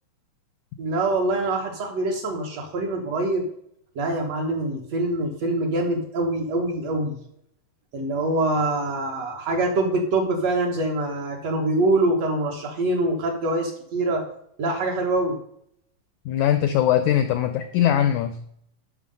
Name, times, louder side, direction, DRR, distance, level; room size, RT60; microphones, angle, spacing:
voice 1, 0.8-3.5 4.0-7.2 7.9-14.2 14.6-15.3, right 2 dB, 60° right, 2 dB, 2.0 m, -24 dB
voice 2, 16.3-18.4, left 10 dB, 85° left, 9 dB, 1.7 m, -21 dB
11.5 x 5.7 x 5.3 m, 0.70 s
omnidirectional pair, 4.2 m